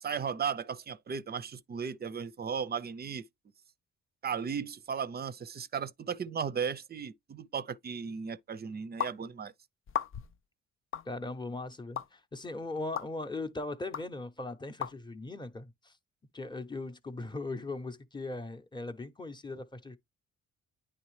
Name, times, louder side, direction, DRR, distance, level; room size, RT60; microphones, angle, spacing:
voice 1, 0.0-3.2 4.2-9.5, right 6 dB, 35° right, 0.5 m, -36 dB
sound 1, 9.0-9.2 9.9-10.4 10.9-11.1 12.0-12.1 13.0-13.1 13.9-14.0 14.8-14.9, left 9 dB, 45° left, 0.5 m, -34 dB
voice 2, 11.1-15.9 16.3-20.0, left 2 dB, 15° left, 0.8 m, -39 dB
9.4 x 3.3 x 3.2 m
cardioid pair, 90°, 30 cm